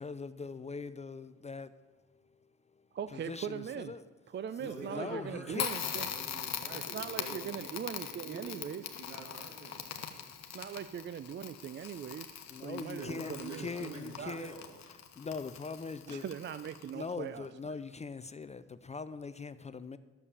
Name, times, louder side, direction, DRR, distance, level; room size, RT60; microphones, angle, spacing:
voice 1, 0.0-2.2 2.7-2.8 3.1-4.0 4.6-5.7 12.5-14.5 15.2-16.2 16.9-20.0, left 4 dB, 25° left, 13 dB, 0.4 m, -42 dB
voice 2, 2.9-3.9 4.3-6.1 6.7-8.8 10.5-14.4 16.1-17.5, right 8 dB, 40° right, 13 dB, 0.4 m, -41 dB
voice 3, 4.6-10.2 12.9-14.7, right 2 dB, 80° right, 0 dB, 3.0 m, -48 dB
Crackle, 5.5-17.1, left 8 dB, 65° left, 1.2 m, -42 dB
11.0 x 7.0 x 7.0 m, 1.4 s
cardioid pair, 90°, 30 cm